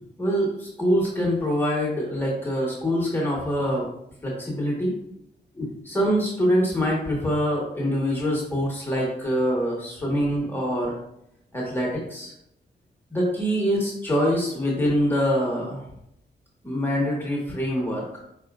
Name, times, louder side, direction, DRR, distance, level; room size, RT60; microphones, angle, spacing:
voice 1, 0.2-3.9 4.2-4.9 5.5-11.0 11.5-12.3 13.1-15.8 16.6-18.2, equal, 10° left, -3 dB, 1.5 m, -24 dB
5.1 x 4.2 x 2.5 m, 0.76 s
wide cardioid pair, 110°, 18 cm